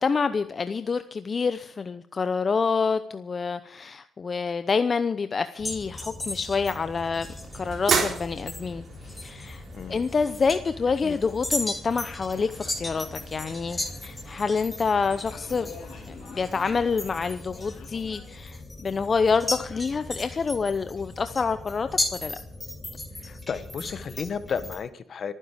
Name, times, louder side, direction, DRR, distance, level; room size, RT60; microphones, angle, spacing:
voice 1, 0.0-7.3 7.5-9.6 9.9-15.7 16.1-22.4, left 5 dB, 45° left, 11 dB, 0.8 m, -27 dB
sound 1, 5.6-24.8, left 2 dB, 15° left, 4.5 m, -36 dB
sound 2, 6.4-17.3, right 5 dB, 65° right, 3.7 m, -36 dB
voice 2, 9.7-10.0 11.0-11.2 23.2-25.3, left 6 dB, 60° left, 12 dB, 1.4 m, -33 dB
sound 3, 12.3-18.3, left 5 dB, 80° left, 3.9 m, -48 dB
26.0 x 10.0 x 5.1 m, 0.64 s
supercardioid pair, 60°, 0 cm